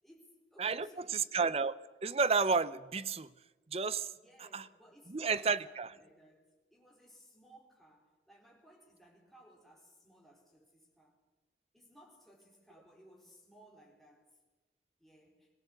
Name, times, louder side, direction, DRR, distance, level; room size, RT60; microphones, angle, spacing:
voice 1, 0.0-1.2 4.1-11.2 11.7-14.2 15.0-15.5, equal, ahead, -3 dB, 4.2 m, -61 dB
voice 2, 0.6-3.3 3.7-4.1 4.4-4.7 5.1-5.9, right 5 dB, 35° right, 15 dB, 0.6 m, -32 dB
21.0 x 15.5 x 8.1 m, 1.2 s
head